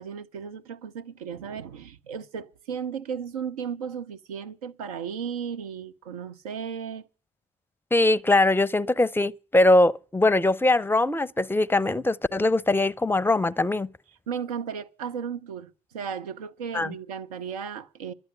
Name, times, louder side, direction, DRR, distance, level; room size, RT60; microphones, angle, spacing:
voice 1, 0.0-7.0 14.3-18.1, right 7 dB, 80° right, 0.7 m, -35 dB
voice 2, 7.9-13.9 16.7-16.9, left 2 dB, 10° left, 0.6 m, -21 dB
12.0 x 7.9 x 9.7 m
figure-of-eight pair, 50°, 19 cm